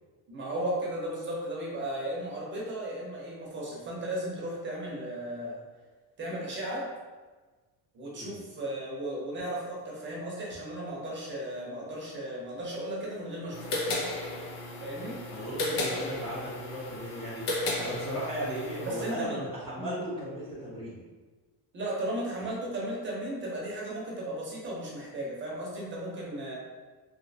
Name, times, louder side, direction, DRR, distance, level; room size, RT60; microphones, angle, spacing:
voice 1, 0.3-5.6 6.2-6.9 7.9-14.0 14.8-15.2 18.8-19.4 19.8-20.0 21.7-26.6, right 1 dB, 25° right, -4 dB, 0.7 m, -35 dB
sound 1, 13.5-19.1, left 2 dB, 85° left, 0.8 m, -34 dB
voice 2, 15.3-17.5 17.8-21.0 22.4-22.5, equal, 15° left, -9 dB, 0.5 m, -36 dB
3.1 x 2.7 x 2.7 m, 1.3 s
cardioid pair, 160°, 42 cm